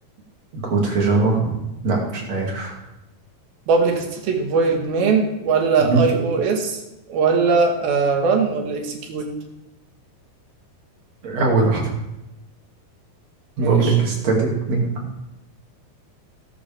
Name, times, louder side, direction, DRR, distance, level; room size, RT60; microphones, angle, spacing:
voice 1, 0.5-1.5 1.8-2.8 5.8-6.0 11.2-11.9 13.6-14.9, right 3 dB, 50° right, -2 dB, 3.6 m, -20 dB
voice 2, 3.7-6.8 7.1-9.3 13.6-14.0, right 4 dB, 80° right, 2 dB, 3.7 m, -20 dB
17.5 x 12.0 x 3.6 m, 0.94 s
omnidirectional pair, 4.2 m